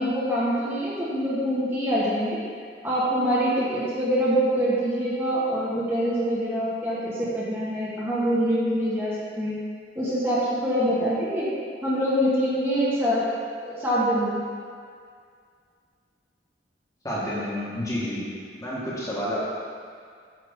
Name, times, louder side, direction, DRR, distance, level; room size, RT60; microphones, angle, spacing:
voice 1, 0.0-2.4 2.8-9.6 9.9-11.5 11.8-13.2 13.6-14.4, equal, 15° right, -9 dB, 1.3 m, -25 dB
voice 2, 17.0-18.3 18.6-19.4, equal, 20° left, -8 dB, 1.4 m, -29 dB
8.0 x 5.6 x 3.6 m, 2.1 s
head